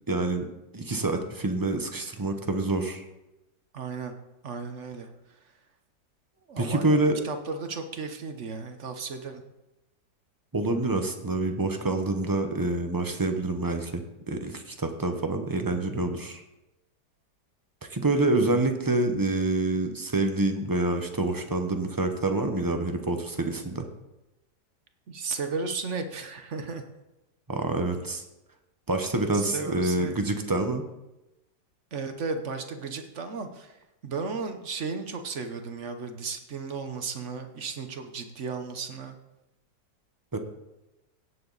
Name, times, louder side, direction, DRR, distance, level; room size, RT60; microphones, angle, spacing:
voice 1, 0.1-0.5 0.7-3.0 6.6-7.1 10.5-16.4 17.9-23.9 27.5-28.2 28.9-30.8 40.3-40.4, right 2 dB, 20° right, 6 dB, 0.5 m, -27 dB
voice 2, 3.7-4.1 4.4-5.1 6.5-6.9 7.2-9.4 18.3-18.5 25.1-26.8 29.3-30.1 31.9-33.8 34.0-39.2, right 4 dB, 50° right, 7 dB, 1.1 m, -34 dB
17.0 x 7.8 x 4.0 m, 0.96 s
omnidirectional pair, 1.8 m